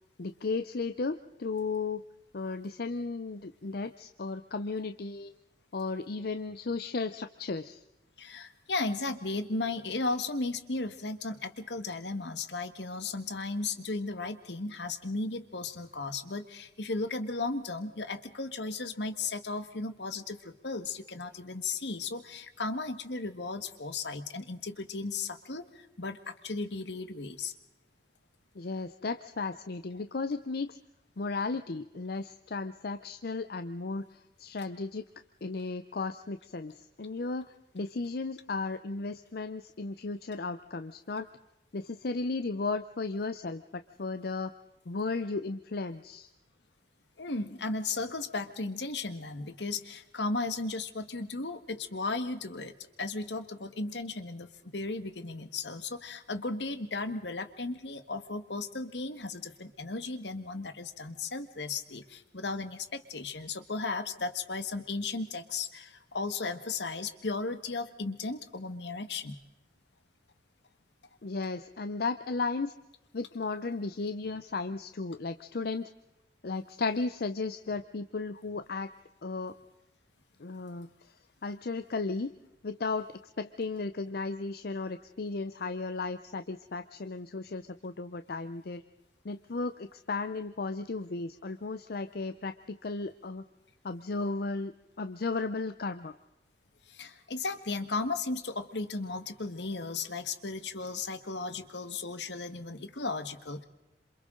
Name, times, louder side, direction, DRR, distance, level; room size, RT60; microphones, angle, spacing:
voice 1, 0.2-2.0 2.3-5.3 5.7-7.8 28.5-30.8 31.2-35.1 35.4-41.3 41.7-44.5 44.9-46.3 71.2-72.7 73.1-75.9 76.4-78.9 79.2-79.5 80.4-81.1 81.4-82.3 82.6-83.1 83.4-88.8 89.2-93.4 93.8-96.1, left 3 dB, 60° left, 10 dB, 0.6 m, -35 dB
voice 2, 8.2-27.5 47.2-69.4 96.9-103.6, left 3 dB, 80° left, 10 dB, 1.5 m, -35 dB
27.5 x 27.0 x 3.8 m, 0.92 s
head